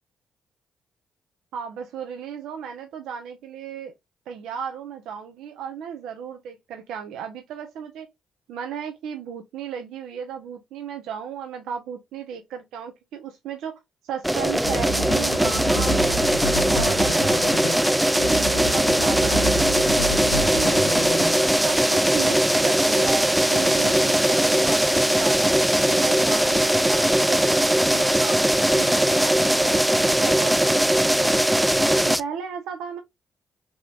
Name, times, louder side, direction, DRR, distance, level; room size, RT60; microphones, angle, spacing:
voice 1, 1.5-3.9 4.3-8.1 8.5-19.4 19.7-21.3 21.6-25.5 25.9-27.0 27.3-29.4 29.6-30.7 31.0-31.4 32.0-33.0, right 8 dB, 80° right, 0.6 m, -35 dB
sound 1, 14.2-32.2, right 1 dB, 5° right, 0.3 m, -20 dB
sound 2, 14.5-21.6, equal, 85° left, 0.9 m, -29 dB
3.4 x 2.9 x 2.3 m
supercardioid pair, 55°, 0 cm